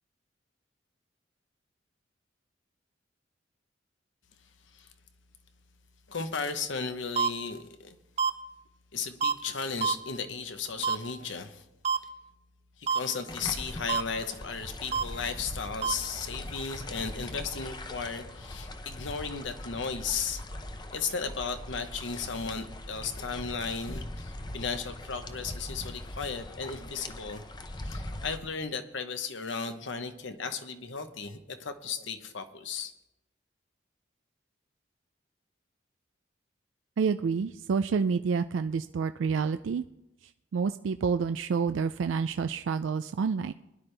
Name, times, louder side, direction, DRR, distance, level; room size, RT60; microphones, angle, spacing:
voice 1, 6.1-8.0 8.9-11.7 12.8-20.4 20.9-27.4 27.8-32.9, left 5 dB, 80° left, 8 dB, 1.0 m, -35 dB
sound 1, 7.2-7.3 8.2-8.3 9.2-9.3 9.8-9.9 10.8-11.0 11.9-12.0 12.9-13.0 13.9-14.0 14.9-15.0 15.8-15.9, right 6 dB, 35° right, 0.5 m, -26 dB
sound 2, 13.3-28.4, left 1 dB, 25° left, 0.7 m, -41 dB
voice 2, 37.0-39.8 40.5-43.5, right 5 dB, 85° right, 10 dB, 0.4 m, -28 dB
21.0 x 10.5 x 3.4 m, 0.92 s
head